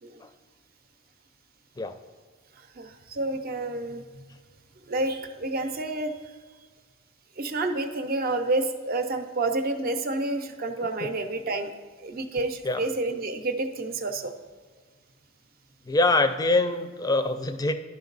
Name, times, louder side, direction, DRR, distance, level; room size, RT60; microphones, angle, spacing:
voice 1, 2.6-4.2 4.9-6.1 7.4-11.7 12.0-14.3, right 2 dB, 45° right, 7 dB, 0.6 m, -29 dB
voice 2, 15.9-17.7, left 2 dB, 20° left, 9 dB, 0.4 m, -24 dB
11.5 x 5.2 x 3.9 m, 1.5 s
head